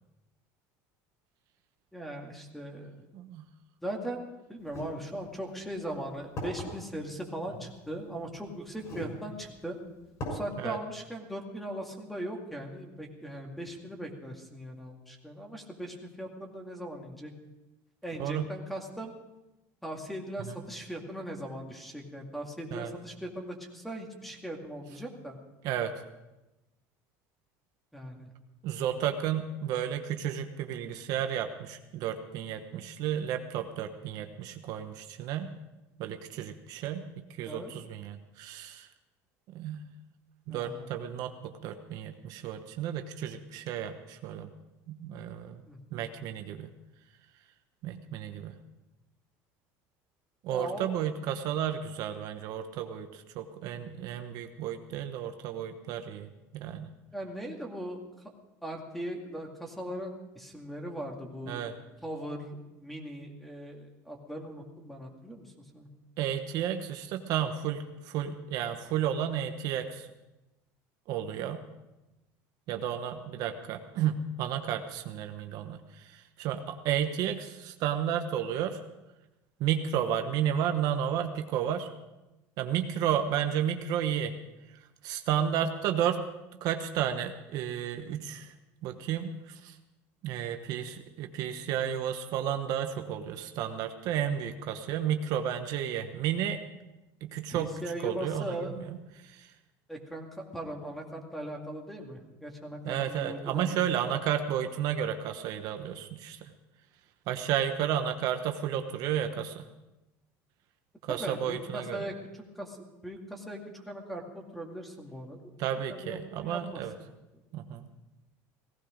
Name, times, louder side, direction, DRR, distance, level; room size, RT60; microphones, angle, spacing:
voice 1, 1.9-3.0 3.8-4.2 4.5-9.8 10.3-17.3 18.0-19.1 19.8-25.4 27.9-28.3 37.4-37.7 40.5-40.9 45.7-46.0 50.5-50.9 57.1-58.0 58.6-61.6 62.0-65.9 97.5-98.7 99.9-104.2 111.1-112.8 113.0-115.4 115.9-116.8, right 1 dB, ahead, 2 dB, 2.3 m, -39 dB
voice 2, 3.1-3.5 10.6-10.8 18.2-18.5 20.5-20.6 22.7-22.9 25.6-25.9 28.6-35.5 36.0-38.9 39.5-39.8 40.5-44.5 44.9-45.6 45.9-46.7 47.8-48.6 50.4-56.3 56.5-56.9 61.5-61.7 66.2-70.1 71.1-71.6 72.7-78.8 79.6-81.9 82.6-84.3 84.7-86.3 86.6-88.5 88.8-89.8 90.2-96.6 97.2-97.7 98.0-99.5 102.8-106.5 107.3-109.7 111.0-112.0 115.6-116.9 117.5-117.9, right 9 dB, 60° right, 6 dB, 1.1 m, -32 dB
sound 1, 4.7-4.9 5.7-5.8 6.4-6.7 7.9-8.0 8.8-9.1 9.6-9.7 10.2-10.4, equal, 45° left, 6.2 m, -36 dB
17.5 x 15.5 x 5.1 m, 1.0 s
cardioid pair, 145°, 7 cm